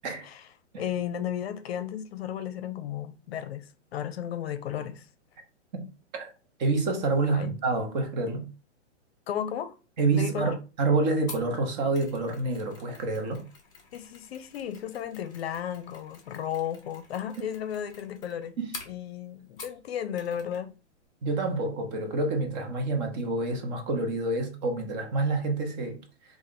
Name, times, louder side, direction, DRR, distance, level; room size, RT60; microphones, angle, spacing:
voice 1, 0.8-5.1 7.3-7.5 9.3-9.7 10.2-10.5 13.9-18.6 18.9-20.7, left 9 dB, 60° left, 0.6 m, -34 dB
voice 2, 6.6-8.5 10.0-13.4 18.6-18.8 21.2-26.0, right 3 dB, 40° right, 0.9 m, -28 dB
Mechanisms, 11.3-19.9 20.2-20.6 20.9-21.0, left 4 dB, 10° left, 0.6 m, -48 dB
3.6 x 2.5 x 3.6 m
hypercardioid pair, 145°, 35 cm